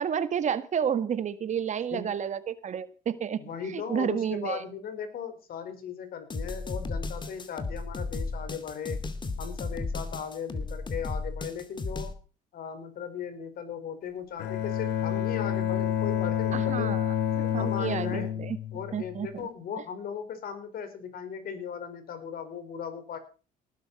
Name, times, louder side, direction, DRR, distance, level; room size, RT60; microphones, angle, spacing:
voice 1, 0.0-4.6 16.5-17.1 17.5-18.6 18.9-19.5, right 8 dB, 45° right, 12 dB, 1.7 m, -31 dB
voice 2, 3.4-9.0 9.4-12.1 12.5-17.0 17.4-18.3 18.7-23.2, left 7 dB, 60° left, 11 dB, 5.0 m, -37 dB
sound 1, 6.3-12.1, left 3 dB, 25° left, 2.5 m, -34 dB
Bowed string instrument, 14.4-19.4, left 10 dB, 85° left, 2.4 m, -29 dB
18.5 x 11.5 x 4.3 m, 0.36 s
cardioid pair, 110°, 17 cm